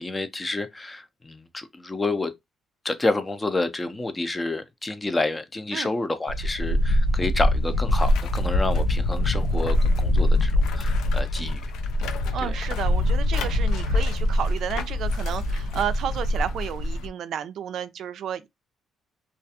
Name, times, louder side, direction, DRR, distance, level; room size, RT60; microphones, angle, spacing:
voice 1, 0.0-2.3 2.8-11.6 12.4-12.5, left 2 dB, 20° left, 0.5 m, -29 dB
sound 1, 6.3-17.1, left 1 dB, 90° left, 0.4 m, -23 dB
voice 2, 12.3-18.5, right 9 dB, 70° right, 0.3 m, -32 dB
2.4 x 2.2 x 2.7 m
cardioid pair, 90°, 0 cm